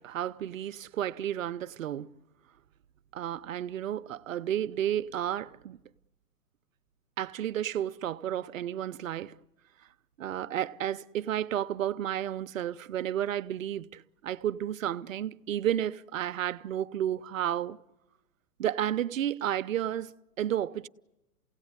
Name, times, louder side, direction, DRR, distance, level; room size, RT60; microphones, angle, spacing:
voice 1, 0.0-2.2 3.1-5.8 7.2-9.3 10.2-17.8 18.6-20.9, right 11 dB, 55° right, 0.8 m, -32 dB
29.0 x 17.5 x 9.7 m
hypercardioid pair, 160°, 47 cm